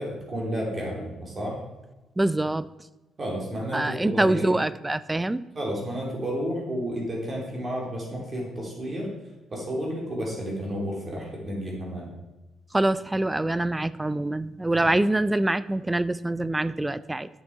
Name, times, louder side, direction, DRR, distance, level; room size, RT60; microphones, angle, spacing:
voice 1, 0.0-1.6 3.2-4.5 5.5-9.1 9.5-12.1 14.7-14.9, equal, 25° right, -2 dB, 3.2 m, -31 dB
voice 2, 2.2-2.7 3.7-5.4 12.7-17.3, right 1 dB, 10° right, 16 dB, 0.3 m, -25 dB
10.0 x 8.3 x 4.7 m, 1.1 s
cardioid pair, 165°, 0 cm